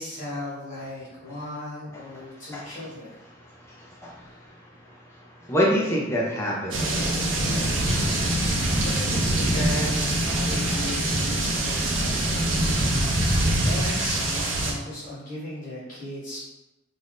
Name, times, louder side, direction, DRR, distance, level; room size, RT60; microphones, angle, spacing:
voice 1, 0.0-3.1 8.7-16.4, left 1 dB, 40° left, -9 dB, 1.1 m, -37 dB
voice 2, 3.4-6.9, equal, 15° left, -4 dB, 0.6 m, -28 dB
sound 1, 6.7-14.7, right 1 dB, 65° right, 0.6 m, -24 dB
2.6 x 2.5 x 3.5 m, 1.0 s
head